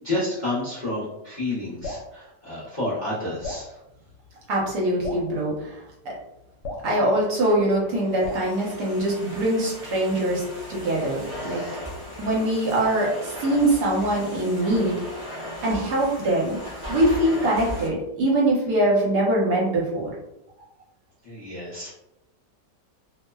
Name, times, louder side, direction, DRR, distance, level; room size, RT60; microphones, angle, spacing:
voice 1, 0.0-3.7 21.2-21.9, left 2 dB, 40° left, -9 dB, 0.7 m, -30 dB
Drip, 1.8-2.1 3.4-3.7 5.0-5.3 6.6-6.9 8.2-8.5, left 2 dB, 90° left, 1.2 m, -33 dB
voice 2, 4.5-5.7 6.8-10.4 10.7-11.6 12.2-15.0 15.6-16.6 16.9-20.1, right 1 dB, 70° right, -4 dB, 1.3 m, -23 dB
Domestic sounds home sounds, 7.2-17.9, left 1 dB, 35° right, 0.6 m, -37 dB
3.0 x 2.0 x 2.2 m, 0.89 s
omnidirectional pair, 1.8 m